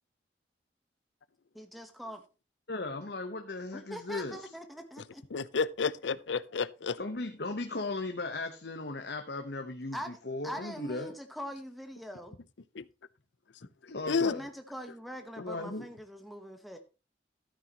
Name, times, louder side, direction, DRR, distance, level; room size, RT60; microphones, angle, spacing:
voice 1, 1.5-2.2 3.7-5.2 9.9-10.2 10.4-12.4 14.2-16.8, equal, ahead, 1.0 m, -43 dB
voice 2, 2.7-4.5 7.0-10.0 10.2-11.2 13.9-14.4 15.4-15.9, left 2 dB, 65° left, 1.0 m, -37 dB
voice 3, 5.3-7.0 12.7-12.8 14.1-14.3, left 5 dB, 90° left, 0.6 m, -30 dB
13.0 x 9.3 x 2.9 m
head